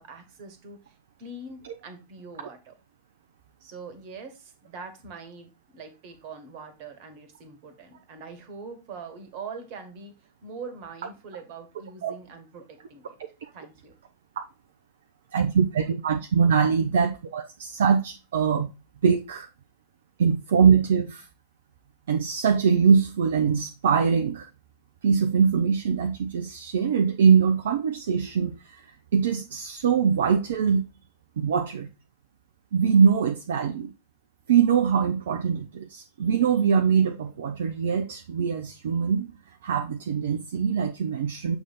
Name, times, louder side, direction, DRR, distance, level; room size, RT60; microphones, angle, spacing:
voice 1, 0.0-2.7 3.6-13.2 13.5-13.9, right 4 dB, 45° right, 1.5 m, -43 dB
voice 2, 15.3-18.7 19.0-19.5 20.2-21.3 22.1-24.5 25.0-28.8 29.1-30.9 31.4-31.9 32.7-33.9 34.5-39.3 39.6-41.6, right 6 dB, 60° right, 0.6 m, -23 dB
7.2 x 3.4 x 4.1 m
figure-of-eight pair, 90°, 0 cm